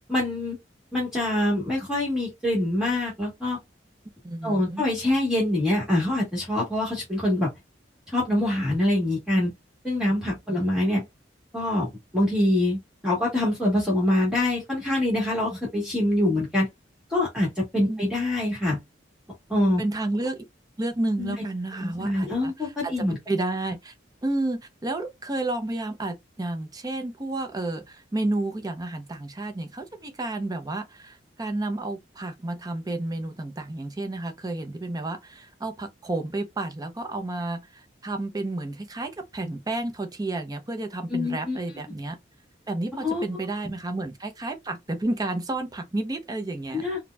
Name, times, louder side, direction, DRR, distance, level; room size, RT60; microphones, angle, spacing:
voice 1, 0.1-0.6 0.9-3.6 4.4-7.5 8.1-9.5 9.8-11.0 11.5-16.7 17.1-18.8 19.5-19.8 21.2-21.3 21.8-23.2 41.1-41.6 43.0-43.2 43.6-43.7 46.7-47.0, left 1 dB, 5° right, 1.3 m, -25 dB
voice 2, 4.2-4.8 10.5-10.7 17.8-18.0 19.8-20.4 20.8-23.9 24.2-42.2 42.7-46.8, right 2 dB, 20° right, 0.6 m, -31 dB
4.2 x 2.1 x 2.2 m
head